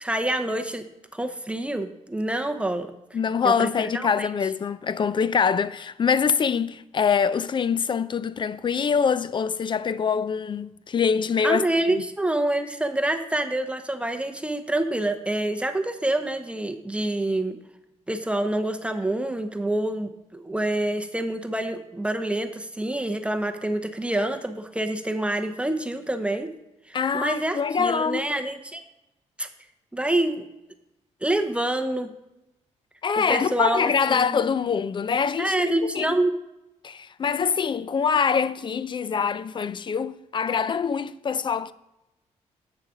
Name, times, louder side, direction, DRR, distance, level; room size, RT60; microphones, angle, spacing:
voice 1, 0.0-0.9 1.1-2.9 3.4-4.3 11.4-17.6 18.1-26.5 26.9-28.8 29.4-29.5 29.9-30.5 31.2-32.1 33.2-34.4 35.4-36.3, right 1 dB, 10° right, 0.8 m, -27 dB
voice 2, 3.1-11.6 11.9-12.0 26.9-28.3 33.0-35.5 36.0-36.1 36.8-41.7, left 6 dB, 40° left, 0.4 m, -24 dB
8.2 x 6.5 x 5.0 m
cardioid pair, 80°, 13 cm